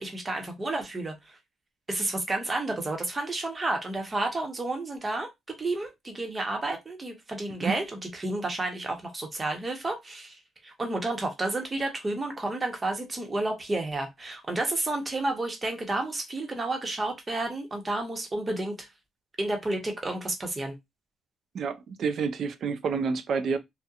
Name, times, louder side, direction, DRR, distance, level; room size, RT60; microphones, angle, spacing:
voice 1, 0.0-1.4 1.9-5.3 5.6-18.8 19.4-20.7, right 2 dB, 25° right, 0.8 m, -31 dB
voice 2, 21.5-23.6, right 5 dB, 60° right, 0.4 m, -29 dB
2.8 x 2.1 x 2.4 m
cardioid pair, 90°, 0 cm